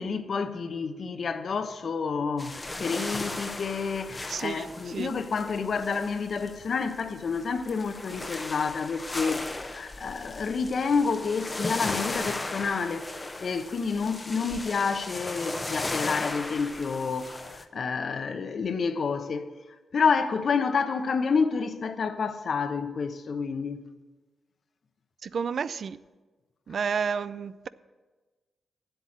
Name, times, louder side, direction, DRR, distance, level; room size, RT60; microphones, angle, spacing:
voice 1, 0.0-9.4 9.7-19.5 19.9-23.9, left 5 dB, 60° left, 0.9 m, -29 dB
sound 1, 2.4-17.6, left 2 dB, 25° left, 0.9 m, -36 dB
voice 2, 4.3-5.1 25.2-26.0 26.7-27.7, right 6 dB, 65° right, 0.3 m, -31 dB
8.2 x 8.1 x 7.4 m
cardioid pair, 65°, 0 cm